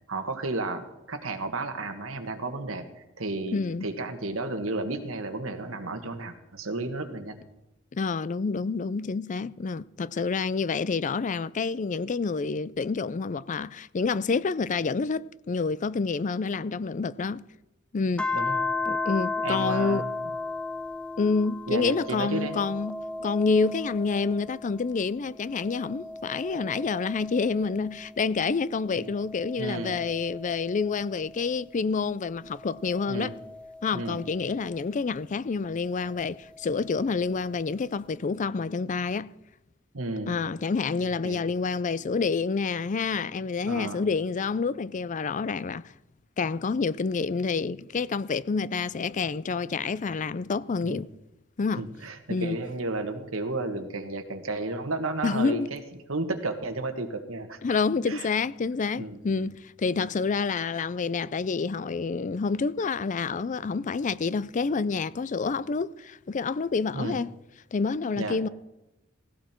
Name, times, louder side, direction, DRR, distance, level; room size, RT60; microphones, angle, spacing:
voice 1, 0.1-7.4 18.3-18.6 19.4-20.1 21.7-22.6 28.9-29.1 29.6-30.0 33.0-33.3 33.9-34.2 39.9-40.4 41.2-41.4 43.7-44.0 50.8-51.0 51.8-55.8 56.1-57.6 58.0-58.3 58.9-59.5 59.9-60.1 66.9-67.2 68.2-68.4, right 2 dB, 85° right, 1.8 m, -33 dB
voice 2, 3.5-3.9 7.9-17.4 17.9-18.3 18.9-20.0 21.2-33.3 33.8-39.3 40.3-45.9 46.4-51.1 51.6-51.9 52.3-52.6 55.2-55.7 57.6-67.3 67.7-68.5, left 4 dB, 40° left, 0.4 m, -28 dB
sound 1, 18.2-24.9 25.3-28.2 28.8-31.6 32.4-34.8 36.2-37.2, left 3 dB, 5° left, 0.8 m, -36 dB
17.5 x 16.0 x 4.5 m
head